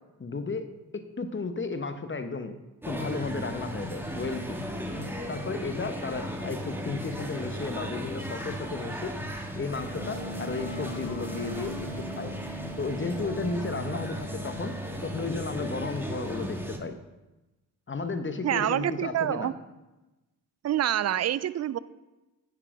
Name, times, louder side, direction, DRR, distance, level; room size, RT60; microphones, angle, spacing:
voice 1, 0.2-2.6 2.9-4.6 5.3-9.2 9.6-12.3 12.8-14.8 15.0-17.0 17.9-19.5, left 3 dB, 25° left, 9 dB, 0.9 m, -34 dB
sound 1, 2.8-16.8, equal, 5° right, 1.5 m, -36 dB
Wind instrument woodwind instrument, 9.9-15.5, left 1 dB, 55° left, 2.0 m, -42 dB
voice 2, 18.4-19.5 20.6-21.8, right 11 dB, 40° right, 17 dB, 0.4 m, -27 dB
9.7 x 4.7 x 4.9 m, 1.1 s
hypercardioid pair, 40°, 46 cm